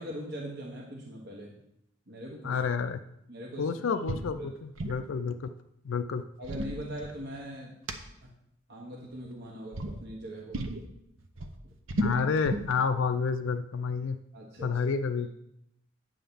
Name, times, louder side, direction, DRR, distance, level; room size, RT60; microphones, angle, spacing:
voice 1, 0.0-1.6 2.1-2.6 3.3-3.8 4.4-4.5 6.4-7.8 8.2-8.3 8.7-10.6 14.3-14.8, equal, 55° right, -3 dB, 1.3 m, -41 dB
voice 2, 2.4-3.0 3.6-5.5 5.8-6.2 11.9-14.2 14.6-15.3, left 5 dB, 70° left, 9 dB, 0.4 m, -29 dB
sound 1, 4.1-4.3 4.6-5.1 6.2-7.5 7.9-8.0 9.0-9.4 9.7-10.0 10.5-10.8 11.2-12.7, right 1 dB, 70° right, 0.8 m, -33 dB
9.1 x 3.9 x 6.9 m, 0.78 s
head